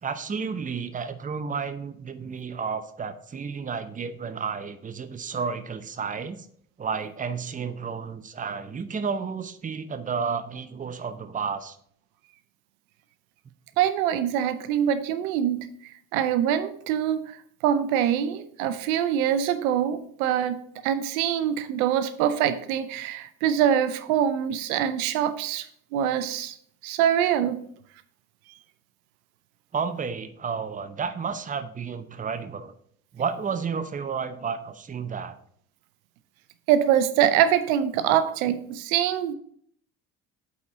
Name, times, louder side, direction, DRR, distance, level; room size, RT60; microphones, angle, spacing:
voice 1, 0.0-6.5 6.8-11.8 29.7-32.7 33.1-35.4, right 5 dB, 20° right, 11 dB, 0.6 m, -31 dB
voice 2, 13.8-15.7 16.1-17.4 17.6-20.6 20.8-25.7 25.9-26.6 26.8-27.6 36.7-39.3, right 10 dB, 75° right, 12 dB, 0.6 m, -24 dB
8.2 x 4.3 x 3.7 m, 0.63 s
hypercardioid pair, 55°, 42 cm